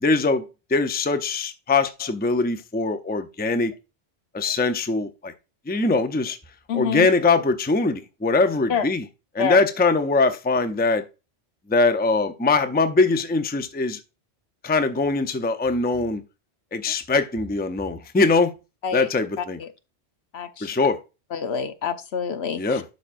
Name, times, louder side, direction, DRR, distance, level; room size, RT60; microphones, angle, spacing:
voice 1, 0.0-3.7 4.3-5.3 5.7-6.4 6.7-9.1 9.3-11.0 11.7-14.0 14.6-16.2 16.7-18.5 18.9-19.6 20.6-21.0 22.5-22.8, left 3 dB, 10° left, 0.5 m, -22 dB
voice 2, 6.7-7.1 8.7-8.8 9.4-9.6 18.8-19.1 19.4-19.7 20.3-20.7 21.3-22.8, left 7 dB, 70° left, 1.0 m, -27 dB
12.0 x 4.9 x 2.5 m
omnidirectional pair, 1.1 m